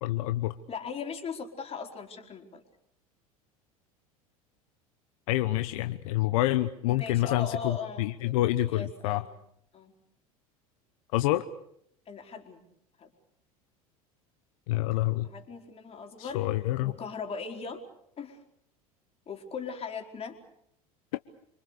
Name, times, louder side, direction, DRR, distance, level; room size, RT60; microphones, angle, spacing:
voice 1, 0.0-0.5 5.3-9.2 11.1-11.4 14.7-15.3 16.2-16.9, left 16 dB, 65° left, 11 dB, 1.0 m, -27 dB
voice 2, 0.7-2.6 6.8-9.3 9.7-9.9 12.1-12.6 13.0-13.1 15.2-16.4 16.8-17.8 18.2-18.4 19.3-20.4, left 5 dB, 35° left, 4 dB, 4.7 m, -39 dB
27.0 x 25.5 x 6.8 m, 0.72 s
hypercardioid pair, 75°, 19 cm